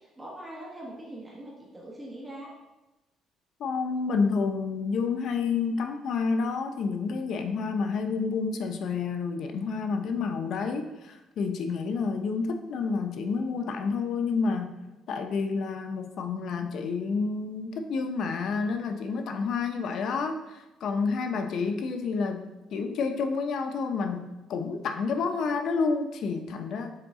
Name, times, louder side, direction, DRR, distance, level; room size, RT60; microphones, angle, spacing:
voice 1, 0.0-2.5, right 1 dB, 10° right, -4 dB, 1.2 m, -42 dB
voice 2, 3.6-14.8 15.1-22.4 22.7-26.9, left 4 dB, 60° left, 6 dB, 0.6 m, -29 dB
6.5 x 4.0 x 3.6 m, 1.0 s
cardioid pair, 140°, 0 cm